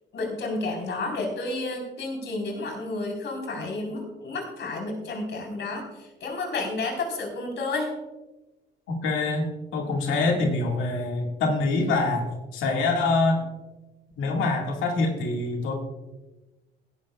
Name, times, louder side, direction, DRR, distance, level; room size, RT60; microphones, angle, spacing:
voice 1, 0.1-7.9, left 2 dB, 65° left, 1 dB, 4.1 m, -31 dB
voice 2, 8.9-13.5 14.2-15.7, left 3 dB, 90° left, 1 dB, 2.0 m, -25 dB
16.5 x 12.5 x 2.4 m, 1.1 s
cardioid pair, 90°, 20 cm